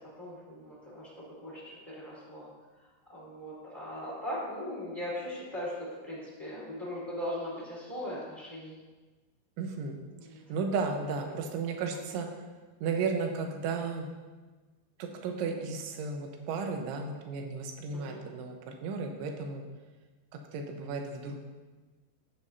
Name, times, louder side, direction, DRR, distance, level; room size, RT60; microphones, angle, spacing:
voice 1, 0.2-1.1 1.4-2.5 3.1-8.7 10.1-10.4 17.9-18.2, left 1 dB, 10° left, -9 dB, 2.6 m, -39 dB
voice 2, 9.6-10.0 10.3-12.3 12.8-14.1 15.0-19.6 20.5-21.4, right 4 dB, 85° right, 3 dB, 3.4 m, -34 dB
14.5 x 8.4 x 2.7 m, 1.3 s
omnidirectional pair, 5.3 m